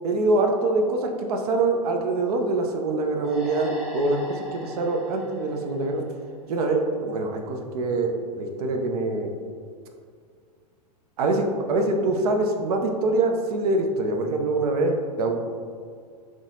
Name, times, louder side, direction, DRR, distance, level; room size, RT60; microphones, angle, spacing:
voice 1, 0.0-6.0 6.5-9.3 11.2-15.3, right 2 dB, 65° right, 3 dB, 0.6 m, -24 dB
sound 1, 3.2-6.7, equal, 5° right, 0.7 m, -40 dB
3.7 x 3.1 x 3.8 m, 2.1 s
hypercardioid pair, 110°, 21 cm